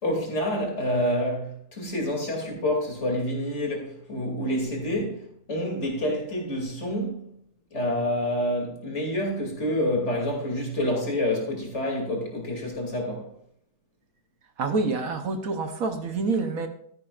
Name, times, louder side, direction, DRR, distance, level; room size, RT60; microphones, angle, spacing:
voice 1, 0.0-7.3 7.7-13.3, left 1 dB, 40° left, 2.9 m, -28 dB
voice 2, 14.6-16.7, right 3 dB, 55° right, 1.2 m, -27 dB
13.0 x 11.0 x 2.4 m
omnidirectional pair, 2.0 m